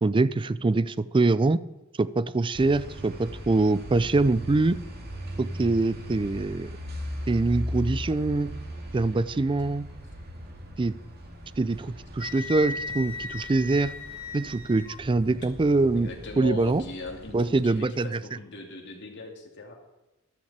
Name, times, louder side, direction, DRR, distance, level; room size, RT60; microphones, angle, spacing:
voice 1, 0.0-1.6 2.0-4.8 5.4-6.7 7.3-8.5 8.9-9.9 10.8-11.0 11.6-13.9 14.3-16.1 16.4-16.8 17.3-18.2, right 3 dB, 25° right, 17 dB, 0.4 m, -24 dB
sound 1, 2.5-17.8, equal, 45° right, 2.4 m, -39 dB
Wind instrument woodwind instrument, 12.2-15.0, left 3 dB, 70° left, 1.8 m, -36 dB
voice 2, 15.9-19.7, left 3 dB, 55° left, 1 dB, 2.7 m, -40 dB
13.5 x 12.5 x 4.3 m, 1.0 s
head